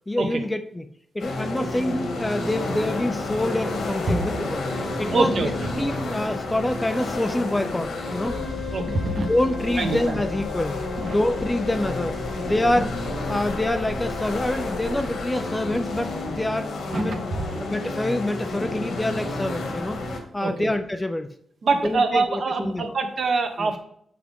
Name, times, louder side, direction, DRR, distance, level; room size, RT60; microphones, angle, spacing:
voice 1, 0.1-0.9 1.1-4.7 5.0-8.4 9.1-13.0 13.3-17.2 17.6-20.0 20.3-21.3 21.8-23.0 23.6-23.7, left 1 dB, 10° left, 8 dB, 0.4 m, -26 dB
sound 1, 1.2-20.2, left 2 dB, 80° left, 1.8 m, -31 dB
voice 2, 5.1-5.7 8.7-9.3 9.8-10.0 11.0-11.1 12.7-12.8 16.9-17.7 20.4-20.7 21.6-23.8, right 4 dB, 50° right, 5 dB, 1.2 m, -25 dB
sound 2, 8.2-15.2, left 5 dB, 50° left, 1.2 m, -35 dB
7.5 x 5.9 x 3.6 m, 0.66 s
wide cardioid pair, 165°, 0 cm